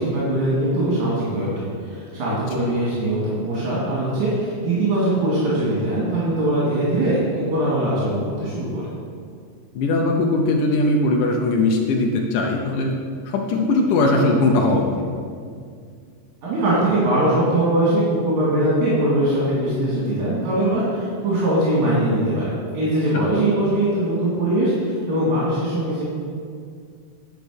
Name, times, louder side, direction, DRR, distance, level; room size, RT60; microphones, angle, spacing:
voice 1, 0.0-8.8 16.4-22.5 22.7-26.0, right 1 dB, 70° right, -8 dB, 3.5 m, -21 dB
voice 2, 9.8-12.9 13.3-14.9 23.1-23.3, left 2 dB, 85° left, 1 dB, 2.4 m, -20 dB
10.5 x 5.2 x 6.5 m, 2.2 s
omnidirectional pair, 3.6 m